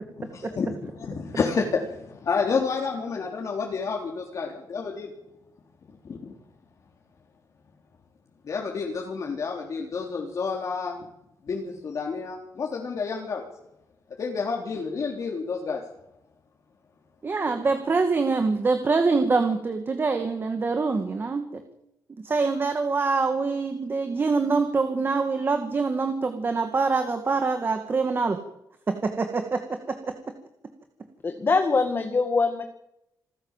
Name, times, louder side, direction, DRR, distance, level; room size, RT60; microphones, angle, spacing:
voice 1, 0.2-5.1 6.0-6.3 8.5-11.0 11.5-13.4 14.2-15.8, left 5 dB, 50° left, 0 dB, 3.5 m, -29 dB
voice 2, 17.2-21.6 22.2-28.4 28.9-30.1, right 4 dB, 30° right, 6 dB, 2.2 m, -25 dB
voice 3, 31.2-32.6, left 4 dB, 30° left, 6 dB, 2.0 m, -23 dB
27.5 x 14.5 x 7.5 m, 0.81 s
wide cardioid pair, 140°, 7 cm